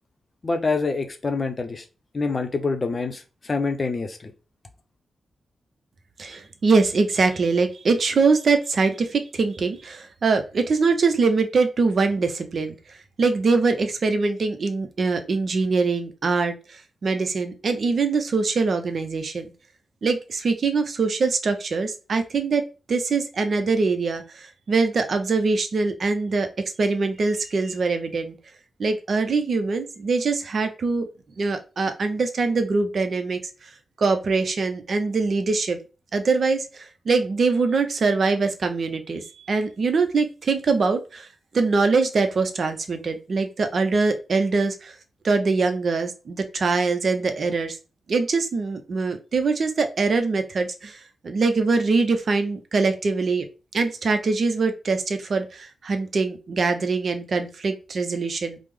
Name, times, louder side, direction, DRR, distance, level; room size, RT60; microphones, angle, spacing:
voice 1, 0.4-1.8 2.1-4.3, left 4 dB, 45° left, 6 dB, 0.6 m, -26 dB
voice 2, 6.2-12.8 13.2-19.5 20.0-22.6 22.9-26.5 26.8-28.4 28.8-31.1 31.4-33.4 34.0-35.8 36.1-41.3 41.5-44.9 45.2-47.8 48.1-53.5 53.7-58.6, right 4 dB, 65° right, 7 dB, 0.5 m, -23 dB
3.4 x 2.0 x 3.1 m, 0.33 s
supercardioid pair, 40°, 0 cm